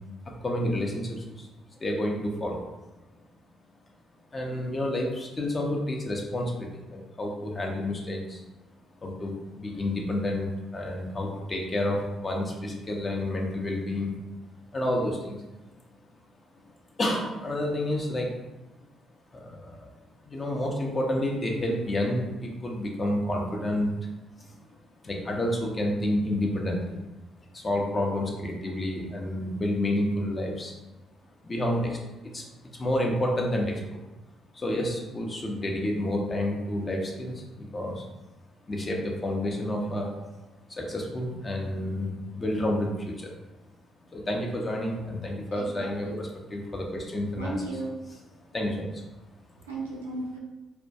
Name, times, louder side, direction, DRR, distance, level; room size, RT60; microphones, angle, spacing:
voice 1, 0.3-1.5 1.8-2.6 4.3-8.4 9.0-14.1 14.7-15.4 17.0-18.3 19.3-19.9 20.2-23.9 24.4-24.6 25.0-27.0 27.5-30.8 31.4-32.0 32.3-34.0 34.5-38.0 38.7-40.1 40.7-43.3 44.1-47.6 48.1-48.2 48.5-49.0, left 1 dB, 35° left, 0 dB, 0.6 m, -29 dB
voice 2, 45.5-46.2 47.4-47.9 49.7-50.4, right 2 dB, 90° right, -3 dB, 0.4 m, -35 dB
2.2 x 2.1 x 2.7 m, 1.1 s
hypercardioid pair, 45°, 0 cm